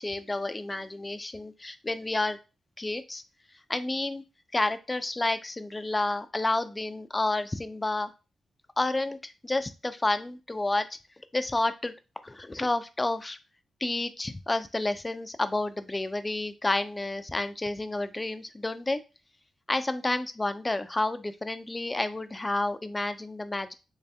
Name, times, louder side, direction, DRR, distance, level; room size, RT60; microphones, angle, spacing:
voice 1, 0.0-2.4 2.8-3.2 3.7-4.2 4.5-8.1 8.8-11.0 11.3-11.9 12.2-13.4 13.8-19.0 19.7-23.7, left 2 dB, 25° left, 11 dB, 0.5 m, -30 dB
3.1 x 2.7 x 3.4 m, 0.30 s
hypercardioid pair, 40°, 0 cm